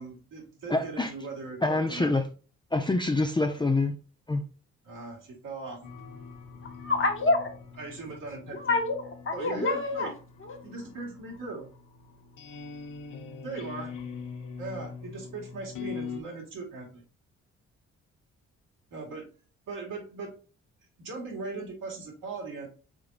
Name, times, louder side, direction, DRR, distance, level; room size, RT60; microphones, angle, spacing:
voice 1, 0.0-2.1 3.5-3.6 4.8-5.8 7.8-8.8 9.3-10.1 10.6-11.7 13.4-13.9 14.6-17.0 18.9-19.3 19.7-20.3 21.0-22.7, right 3 dB, 70° right, 2.0 m, -39 dB
voice 2, 0.7-1.1 1.6-2.2 2.7-4.0 4.3-4.4, left 2 dB, 15° left, 0.5 m, -26 dB
sound 1, 5.8-16.2, left 5 dB, 70° left, 1.0 m, -43 dB
voice 3, 6.6-7.5 8.5-10.1 10.4-10.6, left 3 dB, 40° left, 1.3 m, -27 dB
4.9 x 3.8 x 2.5 m
supercardioid pair, 50°, 33 cm